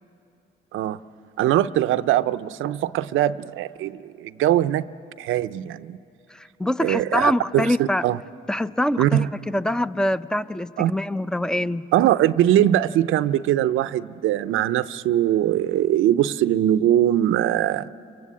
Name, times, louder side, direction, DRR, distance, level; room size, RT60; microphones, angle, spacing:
voice 1, 1.4-4.9 5.2-6.0 6.8-8.2 9.0-9.3 10.8-10.9 11.9-17.9, right 12 dB, 85° right, 13 dB, 0.6 m, -21 dB
voice 2, 6.3-8.1 8.5-11.9, left 1 dB, 5° left, 14 dB, 0.5 m, -24 dB
29.5 x 23.5 x 8.5 m, 2.7 s
cardioid pair, 90°, 20 cm